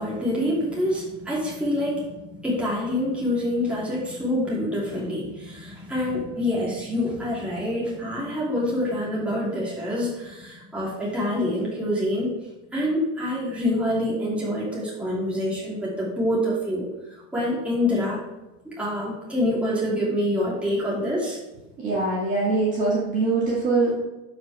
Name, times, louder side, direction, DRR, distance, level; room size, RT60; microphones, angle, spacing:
voice 1, 0.0-12.3 12.7-18.2 18.8-21.4, left 1 dB, 5° right, -7 dB, 2.8 m, -26 dB
voice 2, 21.8-23.9, right 3 dB, 20° right, -7 dB, 2.1 m, -23 dB
12.0 x 5.3 x 3.6 m, 1.0 s
supercardioid pair, 160°, 36 cm